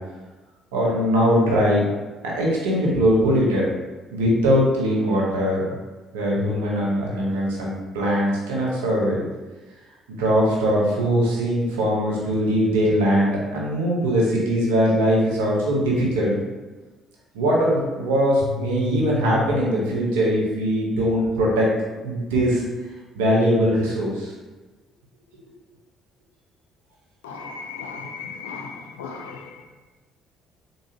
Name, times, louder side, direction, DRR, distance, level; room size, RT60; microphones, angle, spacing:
voice 1, 0.7-1.8 2.2-3.7 4.1-5.7 6.1-9.3 10.2-16.4 17.3-21.7 22.0-22.6 23.1-24.3, equal, 85° right, -4 dB, 0.8 m, -21 dB
sound 1, 18.4-20.9, left 7 dB, 45° right, 1.2 m, -34 dB
voice 2, 27.2-29.6, left 5 dB, 85° left, 4 dB, 0.3 m, -36 dB
3.7 x 2.7 x 2.7 m, 1.2 s
hypercardioid pair, 55°, 0 cm